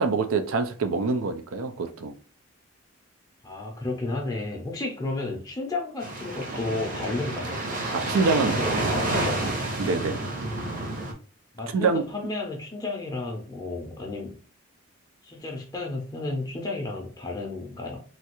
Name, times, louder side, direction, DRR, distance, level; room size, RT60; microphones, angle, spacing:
voice 1, 0.0-2.1 7.9-8.6 9.8-10.2 11.7-12.0, right 4 dB, 85° right, 0.4 m, -25 dB
voice 2, 3.4-7.6 8.3-9.4 11.5-14.4 15.2-18.0, left 2 dB, 20° left, 0.5 m, -32 dB
sound 1, 6.0-11.1, right 2 dB, 40° right, 0.8 m, -29 dB
3.2 x 2.3 x 2.9 m
head